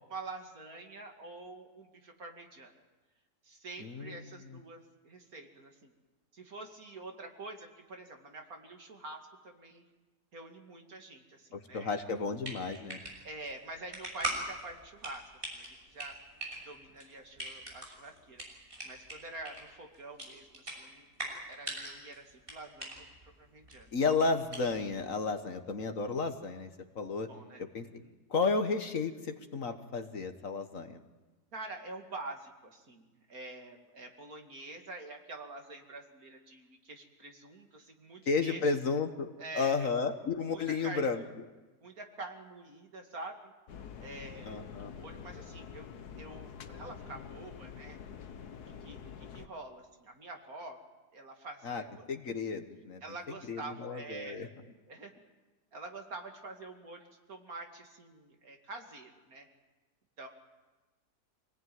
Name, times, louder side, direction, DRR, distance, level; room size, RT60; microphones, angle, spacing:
voice 1, 0.0-2.7 3.4-5.9 6.3-9.9 10.3-11.9 13.2-15.2 15.5-16.2 16.6-18.5 18.8-23.9 27.3-28.2 31.5-38.8 39.4-39.9 40.4-41.3 41.8-43.5 44.0-45.9 46.1-48.0 48.7-50.8 51.1-52.1 53.0-54.5 54.9-55.1 55.7-59.5 60.2-60.3, right 2 dB, 60° right, 3 dB, 2.8 m, -46 dB
voice 2, 3.8-4.2 11.5-13.0 23.9-26.7 26.9-27.3 27.6-27.8 28.3-31.0 38.3-39.3 39.5-41.2 44.5-44.9 51.6-51.8 52.1-53.0 53.5-54.5, left 4 dB, 55° left, 7 dB, 1.6 m, -32 dB
sound 1, 12.1-25.1, right 1 dB, 30° right, 6.7 m, -43 dB
sound 2, 43.7-49.5, left 7 dB, 70° left, 1.6 m, -47 dB
25.5 x 18.5 x 9.4 m, 1.2 s
omnidirectional pair, 1.8 m